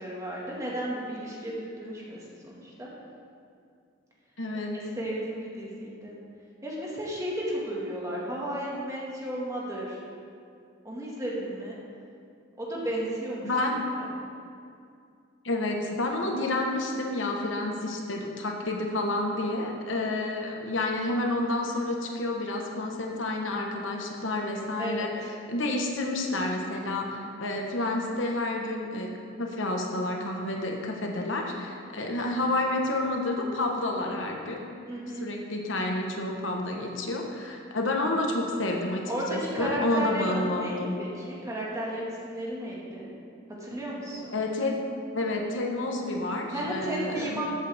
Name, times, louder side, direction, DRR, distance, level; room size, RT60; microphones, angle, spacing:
voice 1, 0.0-2.9 4.9-6.2 6.6-10.0 10.9-11.8 12.6-13.5 14.0-14.1 24.8-25.1 34.9-35.2 39.1-43.1 43.6-44.4 46.5-47.5, equal, 15° right, -5 dB, 1.8 m, -33 dB
voice 2, 4.4-4.8 13.4-13.8 15.4-25.1 25.5-29.1 29.4-34.6 35.1-40.9 44.3-44.8 45.1-47.5, left 2 dB, 75° left, 1 dB, 1.2 m, -29 dB
13.5 x 7.9 x 3.5 m, 2.4 s
head